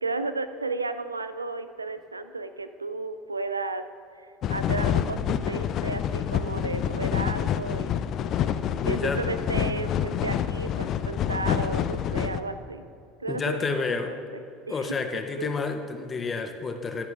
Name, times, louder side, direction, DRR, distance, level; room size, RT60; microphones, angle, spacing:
voice 1, 0.0-3.8 4.2-8.0 8.8-12.8 13.2-14.2 14.7-14.9 15.1-15.5, right 3 dB, 85° right, 11 dB, 0.4 m, -33 dB
sound 1, 4.4-12.4, left 9 dB, 45° left, 0.4 m, -27 dB
voice 2, 8.8-9.2 13.3-14.2 14.7-17.1, left 4 dB, 25° left, 6 dB, 0.9 m, -29 dB
13.5 x 11.0 x 2.5 m, 2.7 s
figure-of-eight pair, 70°, 0 cm